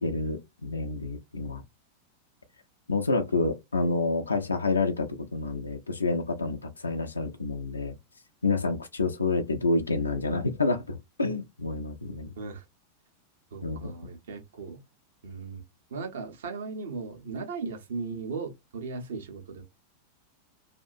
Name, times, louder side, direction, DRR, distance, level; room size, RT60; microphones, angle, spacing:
voice 1, 0.0-1.6 2.9-8.0 8.4-12.3 13.6-13.9, left 3 dB, 80° left, 0.5 m, -28 dB
voice 2, 13.5-14.8 15.2-15.6 15.9-19.6, right 4 dB, 60° right, 0.9 m, -37 dB
2.7 x 2.3 x 2.6 m
figure-of-eight pair, 90°, 0 cm